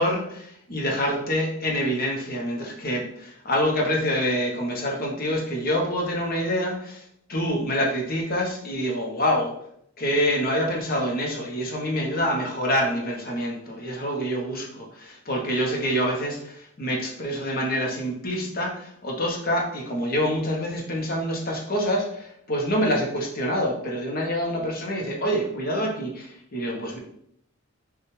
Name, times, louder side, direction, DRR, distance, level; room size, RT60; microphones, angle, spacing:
voice 1, 0.0-7.0 7.3-9.5 10.0-27.0, equal, 40° left, -1 dB, 0.9 m, -26 dB
6.0 x 2.4 x 3.1 m, 0.71 s
head